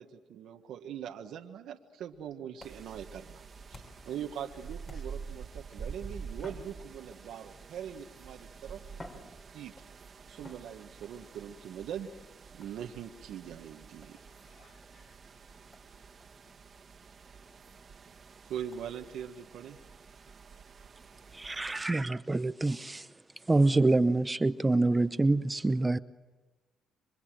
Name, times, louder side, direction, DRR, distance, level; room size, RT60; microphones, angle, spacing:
voice 1, 0.0-8.8 9.5-9.7 10.3-12.1 12.5-14.2 18.4-19.8, right 9 dB, 80° right, 1.4 m, -42 dB
sound 1, 2.6-4.2 4.8-5.4 6.3-7.4 8.3-8.4 8.9-10.0 10.4-11.2 12.6-12.9 14.0-14.2 14.8-14.9 15.3-15.4 15.7-15.9 16.2-16.3 16.7-16.8 17.2-17.3 17.7-17.8 18.7-18.8, left 1 dB, 30° left, 4.6 m, -53 dB
sound 2, 2.6-21.8, right 5 dB, 45° right, 1.8 m, -48 dB
voice 2, 3.7-4.1 4.9-5.0 10.2-10.3 14.1-15.7 16.4-16.6 17.5-17.8 21.2-21.5, left 5 dB, 50° left, 1.6 m, -66 dB
voice 3, 21.3-23.1 23.5-26.0, right 2 dB, 20° right, 0.8 m, -26 dB
28.5 x 24.5 x 7.6 m
cardioid pair, 90°, 0 cm